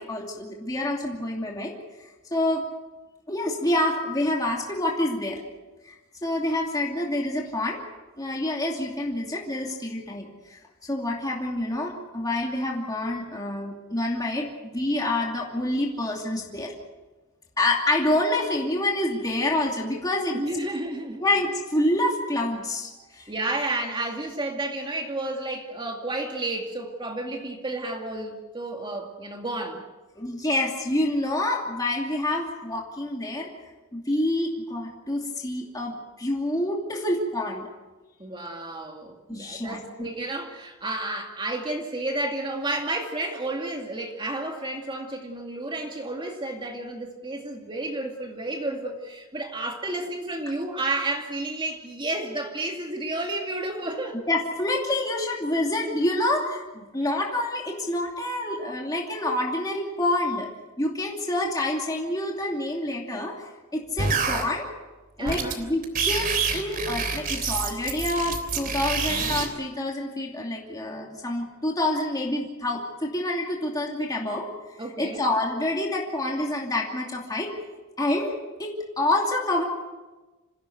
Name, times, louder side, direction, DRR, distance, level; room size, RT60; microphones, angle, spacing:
voice 1, 0.0-1.7 2.3-2.6 3.3-5.4 5.8-7.8 8.2-16.7 17.6-20.4 21.2-23.3 30.2-33.5 33.9-37.7 39.3-40.1 54.3-60.5 60.8-63.4 63.7-64.7 65.2-74.5 75.0-77.5 78.0-79.6, left 1 dB, 15° left, -1 dB, 2.7 m, -27 dB
voice 2, 20.3-21.2 23.3-29.8 38.2-54.2 58.5-58.6 65.2-65.6 74.8-75.2, right 2 dB, 20° right, 2 dB, 2.4 m, -31 dB
sound 1, 64.0-64.4 65.3-65.5 65.8-69.5, right 5 dB, 40° right, 3.3 m, -27 dB
27.0 x 16.5 x 7.9 m, 1.2 s
head